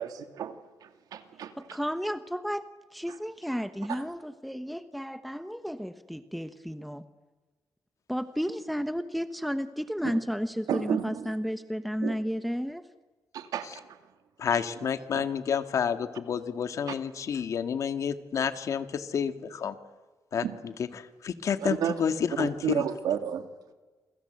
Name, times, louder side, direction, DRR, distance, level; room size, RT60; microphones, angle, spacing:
voice 1, 0.0-1.5 3.9-4.0 10.0-10.2 10.7-11.3 12.0-12.1 13.3-14.0 14.5-14.6 15.1-15.2 20.4-20.6 21.6-21.9 22.4-23.5, right 9 dB, 80° right, 8 dB, 2.5 m, -32 dB
voice 2, 1.6-2.7 2.9-7.0 8.1-12.8, equal, ahead, 10 dB, 1.0 m, -32 dB
voice 3, 14.4-19.8 20.3-22.8, left 7 dB, 55° left, 9 dB, 1.9 m, -30 dB
28.5 x 25.0 x 8.0 m, 1.2 s
cardioid pair, 135°, 6 cm